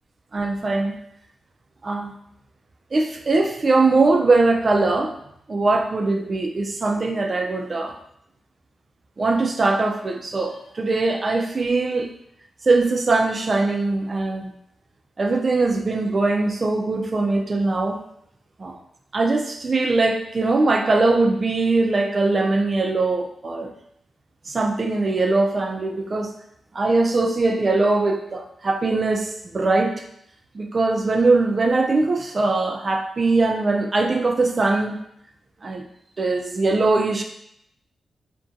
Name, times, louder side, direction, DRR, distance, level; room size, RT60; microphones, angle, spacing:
voice 1, 0.3-1.0 1.8-2.1 2.9-5.1 5.5-8.0 9.2-12.1 12.6-14.5 15.2-18.0 18.6-18.8 19.1-23.7 24.5-26.3 26.7-29.9 30.5-35.0 35.6-35.8 36.2-37.2, right 3 dB, 45° right, 2 dB, 0.4 m, -21 dB
2.5 x 2.2 x 2.5 m, 0.75 s
supercardioid pair, 45°, 0 cm